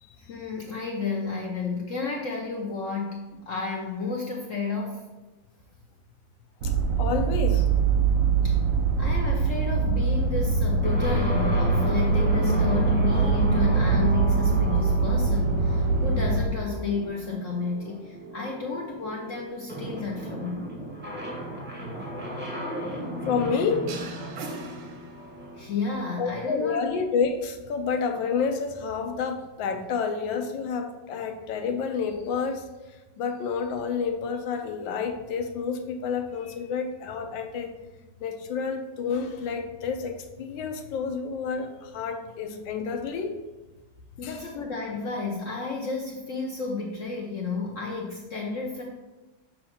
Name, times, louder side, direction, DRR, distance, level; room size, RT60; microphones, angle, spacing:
voice 1, 0.2-5.0 8.4-8.6 9.0-20.7 25.5-26.9 44.2-48.8, left 4 dB, 65° left, -1 dB, 0.7 m, -32 dB
sound 1, 6.6-16.5, right 4 dB, 60° right, 0.9 m, -23 dB
voice 2, 7.0-7.7 23.2-23.9 26.2-37.7 38.2-43.4 44.2-44.4, left 5 dB, 85° left, 5 dB, 1.4 m, -29 dB
sound 2, 10.8-26.6, equal, 10° right, 0.8 m, -35 dB
sound 3, 23.9-25.6, right 3 dB, 90° right, 1.5 m, -40 dB
6.5 x 2.9 x 5.6 m, 1.1 s
omnidirectional pair, 2.1 m